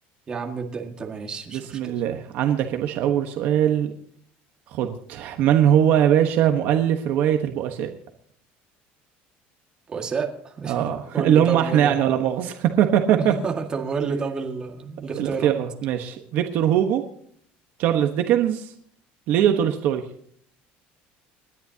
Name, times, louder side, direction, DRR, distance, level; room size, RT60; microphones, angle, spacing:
voice 1, 0.3-2.0 9.9-11.9 13.2-15.5, right 5 dB, 20° right, 3 dB, 1.9 m, -30 dB
voice 2, 1.5-3.9 4.7-7.9 10.7-13.3 15.2-17.0 17.8-18.7 19.3-20.0, right 10 dB, 50° right, 5 dB, 1.2 m, -21 dB
29.5 x 11.0 x 2.9 m, 0.64 s
cardioid pair, 175°, 4 cm